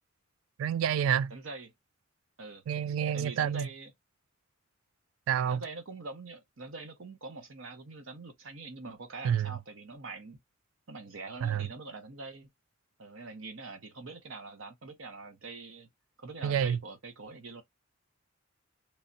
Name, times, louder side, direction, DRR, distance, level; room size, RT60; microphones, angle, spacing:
voice 1, 0.6-1.3 2.7-3.7 5.3-5.6 9.2-9.5 11.4-11.7 16.4-16.8, right 8 dB, 90° right, 0.3 m, -28 dB
voice 2, 1.3-1.7 2.4-2.6 3.1-3.9 5.4-10.4 10.9-12.5 13.0-15.9 16.2-17.6, right 3 dB, 70° right, 0.9 m, -44 dB
3.5 x 3.1 x 2.7 m
head